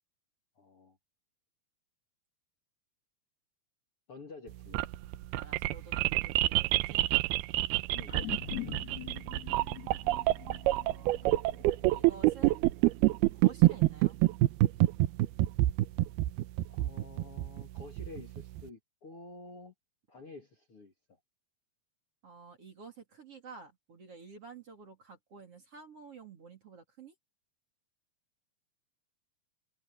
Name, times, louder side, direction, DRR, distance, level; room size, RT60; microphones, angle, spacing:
voice 1, 0.6-1.0 4.1-4.9 7.9-8.2 10.9-11.0 16.7-19.7 20.1-21.2, left 3 dB, 40° left, 2.4 m, -50 dB
sound 1, 4.5-18.6, right 18 dB, 80° right, 2.5 m, -27 dB
voice 2, 5.3-7.1 10.8-11.4 11.9-12.6 13.3-14.2 22.2-27.1, right 5 dB, 40° right, 3.2 m, -51 dB
sound 2, 8.1-12.6 13.0-13.1, left 12 dB, 70° left, 3.7 m, -43 dB
omnidirectional pair, 4.7 m